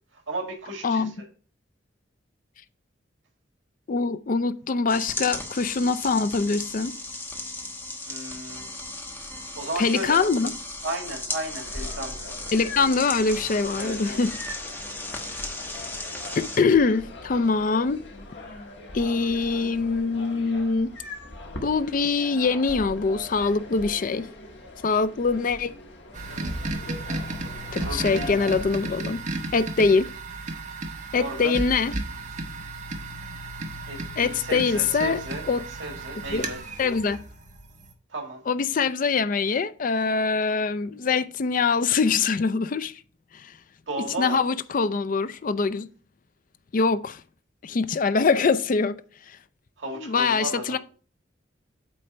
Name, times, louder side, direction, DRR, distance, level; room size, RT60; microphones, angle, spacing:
voice 1, 0.3-1.1 8.1-8.7 9.2-10.2 10.8-12.3 13.7-14.2 27.8-28.4 31.2-31.5 33.9-35.4 35.8-36.6 38.1-38.4 43.9-44.4 49.8-50.8, right 2 dB, 80° right, 1.9 m, -34 dB
voice 2, 3.9-6.9 9.8-10.5 12.5-14.4 16.4-18.0 18.9-20.9 21.6-24.3 24.8-25.7 27.7-29.2 29.5-30.1 31.1-31.9 34.2-35.2 35.5-35.6 36.3-36.4 36.8-37.2 38.5-42.9 43.3-43.5 44.2-45.9 46.7-47.2 47.6-48.9 49.9-50.8, left 4 dB, 45° left, 0.4 m, -23 dB
sound 1, 4.9-16.6, left 2 dB, 10° left, 1.1 m, -36 dB
sound 2, 11.6-28.8, left 2 dB, 70° left, 1.4 m, -41 dB
sound 3, 26.1-37.9, right 2 dB, 40° right, 1.1 m, -34 dB
8.5 x 3.4 x 5.4 m
head